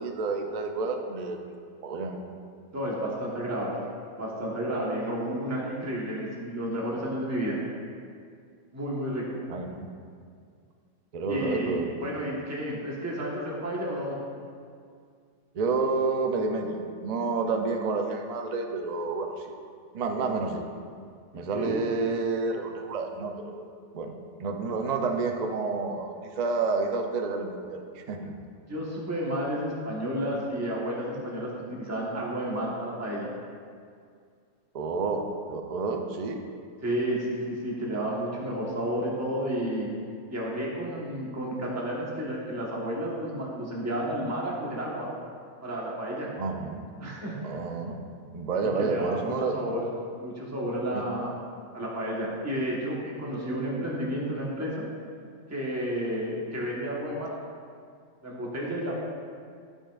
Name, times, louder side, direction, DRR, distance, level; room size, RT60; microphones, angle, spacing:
voice 1, 0.0-1.4 1.8-2.2 9.5-9.9 11.1-12.1 15.5-19.5 19.9-20.7 21.3-23.7 23.9-24.1 24.4-28.3 34.7-36.4 46.4-46.8 47.4-48.0 48.3-49.6 50.9-51.0, right 4 dB, 65° right, 4 dB, 0.4 m, -29 dB
voice 2, 2.7-3.8 4.2-7.6 8.7-9.4 11.3-14.2 21.5-21.8 28.7-33.3 36.8-39.9 40.3-45.1 45.6-46.3 47.0-47.4 48.6-49.8 50.2-51.3 51.7-54.8 55.5-57.3 58.2-58.9, equal, 10° right, -5 dB, 1.1 m, -31 dB
12.5 x 5.4 x 2.4 m, 2.2 s
omnidirectional pair, 1.5 m